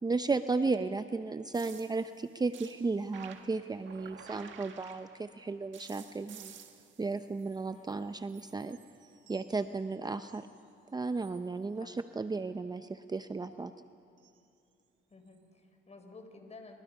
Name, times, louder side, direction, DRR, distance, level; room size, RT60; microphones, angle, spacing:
voice 1, 0.0-6.5 7.0-8.8 9.3-10.5 10.9-13.7, right 3 dB, 20° right, 10 dB, 0.6 m, -34 dB
sound 1, 1.5-5.4 5.7-8.0 8.3-10.6 11.0-11.5 14.2-14.4 15.3-15.4, right 8 dB, 75° right, 1.8 m, -53 dB
voice 2, 15.1-16.7, left 3 dB, 35° left, 5 dB, 4.5 m, -52 dB
28.5 x 24.0 x 5.5 m, 2.6 s
cardioid pair, 90°, 20 cm